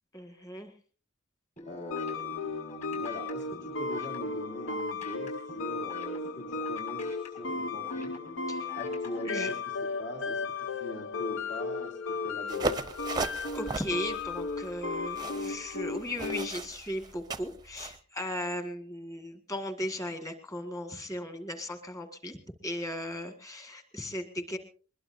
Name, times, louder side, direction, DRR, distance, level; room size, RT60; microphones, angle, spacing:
voice 1, 0.1-0.7 8.5-8.8 9.2-9.5 13.5-24.6, left 1 dB, 15° left, 6 dB, 1.9 m, -37 dB
sound 1, 1.6-9.4, left 3 dB, 35° left, 5.8 m, -49 dB
voice 2, 1.7-8.1 8.8-12.8, left 1 dB, 60° left, -1 dB, 2.9 m, -42 dB
sound 2, 1.9-16.7, left 4 dB, 75° left, 0.8 m, -35 dB
sound 3, 12.5-18.0, right 3 dB, 20° right, 0.6 m, -37 dB
22.0 x 21.5 x 2.7 m, 0.39 s
head